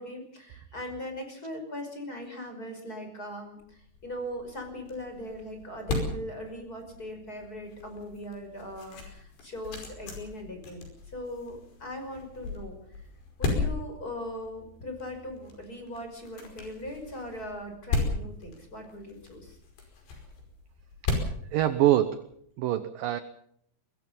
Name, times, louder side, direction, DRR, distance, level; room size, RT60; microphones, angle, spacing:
voice 1, 0.0-13.1 13.4-19.6, left 1 dB, 20° left, 5 dB, 5.6 m, -40 dB
sound 1, 3.6-22.3, left 3 dB, 70° left, 7.3 m, -36 dB
voice 2, 21.0-23.2, right 13 dB, 75° right, 12 dB, 2.0 m, -26 dB
23.0 x 21.5 x 5.5 m, 0.67 s
omnidirectional pair, 5.1 m